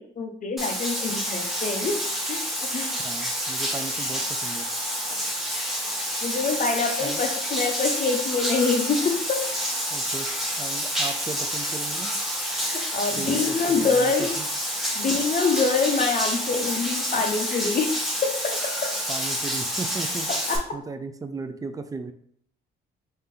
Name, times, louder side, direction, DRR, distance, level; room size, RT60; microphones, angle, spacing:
voice 1, 0.0-1.9 2.3-2.4 2.7-2.9 6.2-9.5 12.6-14.3 14.9-17.9 18.2-18.9 20.3-20.6, left 4 dB, 40° left, 4 dB, 0.7 m, -25 dB
Bathtub (filling or washing), 0.6-20.6, equal, ahead, 1.0 m, -28 dB
voice 2, 3.0-4.7 7.0-7.2 9.9-10.3 10.6-12.1 13.2-14.5 19.1-20.3 20.7-22.1, right 4 dB, 20° right, 9 dB, 0.4 m, -36 dB
3.5 x 2.7 x 3.6 m, 0.64 s
cardioid pair, 90°, 20 cm